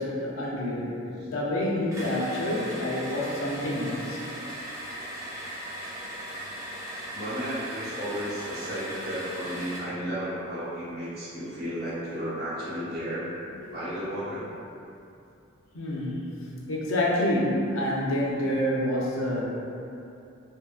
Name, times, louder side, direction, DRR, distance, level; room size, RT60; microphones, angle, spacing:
voice 1, 0.0-1.0 1.3-4.2 13.7-13.8 14.0-14.1 15.7-16.3 16.7-19.5, left 1 dB, 75° left, -4 dB, 0.5 m, -28 dB
sound 1, 1.9-9.9, right 1 dB, 15° right, 0.4 m, -38 dB
voice 2, 7.1-13.3 13.7-14.5, equal, 50° right, -10 dB, 0.8 m, -33 dB
2.7 x 2.5 x 2.2 m, 2.6 s
head